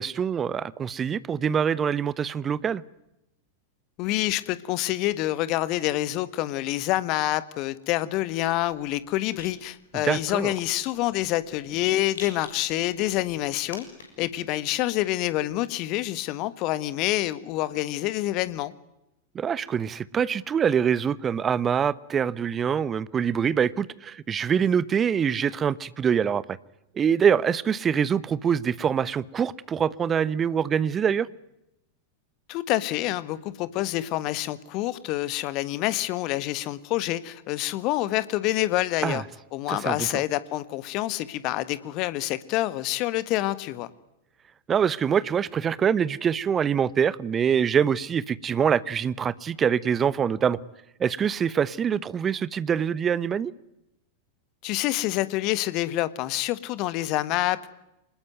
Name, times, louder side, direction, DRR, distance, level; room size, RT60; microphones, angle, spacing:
voice 1, 0.0-2.8 9.9-10.5 19.3-26.6 26.9-31.3 39.0-39.2 39.7-40.1 44.7-50.6 51.0-53.5, right 7 dB, 25° right, 20 dB, 1.0 m, -24 dB
voice 2, 4.0-13.8 14.2-18.7 32.5-39.2 39.5-43.9 54.6-57.7, left 16 dB, 40° left, 16 dB, 1.6 m, -27 dB
Rattle, 9.0-14.3, left 4 dB, 65° left, 6.6 m, -48 dB
26.0 x 20.5 x 9.4 m, 0.87 s
figure-of-eight pair, 90°, 0 cm